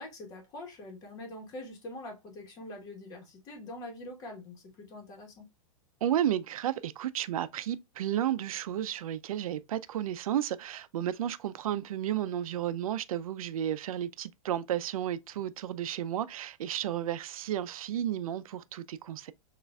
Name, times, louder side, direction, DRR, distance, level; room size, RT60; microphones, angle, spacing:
voice 1, 0.0-5.4, left 1 dB, 20° left, 1.1 m, -44 dB
voice 2, 6.0-19.3, right 11 dB, 85° right, 0.4 m, -32 dB
6.4 x 2.5 x 2.2 m
supercardioid pair, 170°, 18 cm